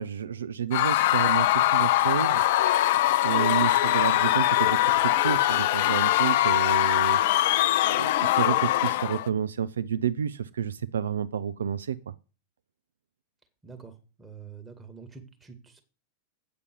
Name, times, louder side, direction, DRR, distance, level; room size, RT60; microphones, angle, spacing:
voice 1, 0.0-2.4 3.2-7.2 7.9-12.1, right 8 dB, 65° right, 15 dB, 0.4 m, -30 dB
Screaming / Cheering / Crowd, 0.7-9.3, left 14 dB, 50° left, 0.4 m, -22 dB
voice 2, 13.6-13.9 14.2-15.8, right 5 dB, 10° right, 5 dB, 2.1 m, -46 dB
8.6 x 6.7 x 6.9 m, 0.35 s
figure-of-eight pair, 90°, 0 cm